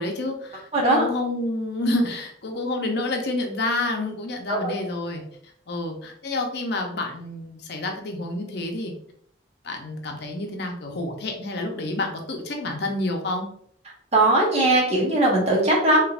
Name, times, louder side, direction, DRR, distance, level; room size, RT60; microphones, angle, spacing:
voice 1, 0.0-5.2 5.7-8.9 9.6-13.5, left 2 dB, 60° left, 3 dB, 0.6 m, -28 dB
voice 2, 0.7-1.0 4.5-4.6 14.1-16.0, right 1 dB, 35° right, -3 dB, 1.0 m, -19 dB
3.3 x 3.0 x 2.4 m, 0.64 s
head